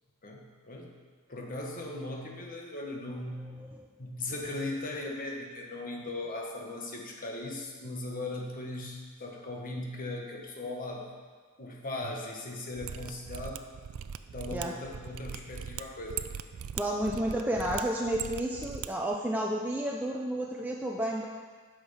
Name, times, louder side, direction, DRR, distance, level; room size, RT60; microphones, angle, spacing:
voice 1, 0.2-0.9 1.3-3.6 4.0-11.1 11.6-13.6 14.3-16.2, left 2 dB, 40° left, 0 dB, 1.3 m, -38 dB
Mechanisms, 12.7-18.9 19.1-19.2, right 8 dB, 65° right, 0.4 m, -40 dB
voice 2, 16.7-21.3, right 1 dB, 10° right, -2 dB, 0.5 m, -31 dB
8.2 x 6.4 x 5.6 m, 1.5 s
head